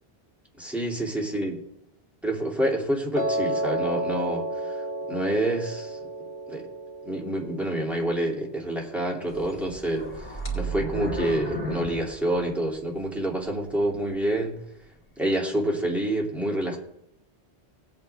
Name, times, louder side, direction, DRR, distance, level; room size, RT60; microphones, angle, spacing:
voice 1, 0.6-1.6 2.2-6.0 6.5-6.7 7.0-14.6 15.2-16.8, right 1 dB, ahead, -2 dB, 2.5 m, -28 dB
Piano, 3.2-9.3, right 1 dB, 35° right, 2.3 m, -32 dB
sound 1, 9.3-13.0 13.5-13.6 14.2-14.3, right 1 dB, 60° left, 3.9 m, -33 dB
19.0 x 8.7 x 3.4 m, 0.79 s
omnidirectional pair, 1.1 m